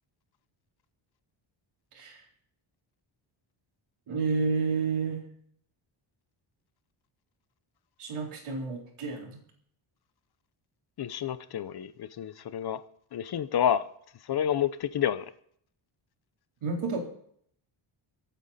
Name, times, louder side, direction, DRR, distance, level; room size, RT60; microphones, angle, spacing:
voice 1, 4.1-5.2 8.0-9.4 16.6-17.0, right 4 dB, 85° right, 0 dB, 4.0 m, -30 dB
voice 2, 11.0-12.8 13.1-13.8 14.2-15.3, left 9 dB, 50° left, 14 dB, 0.7 m, -29 dB
24.5 x 9.0 x 4.2 m, 0.64 s
wide cardioid pair, 175°, 49 cm